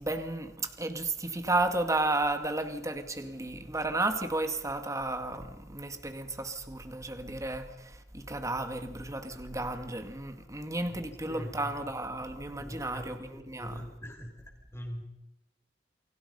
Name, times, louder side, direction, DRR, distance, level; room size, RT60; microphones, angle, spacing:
voice 1, 0.0-13.9, right 2 dB, 20° right, 2.1 m, -33 dB
voice 2, 10.9-11.9 12.2-12.3 12.6-14.4 14.7-15.0, equal, 15° left, 5.9 m, -43 dB
29.5 x 24.0 x 5.6 m
head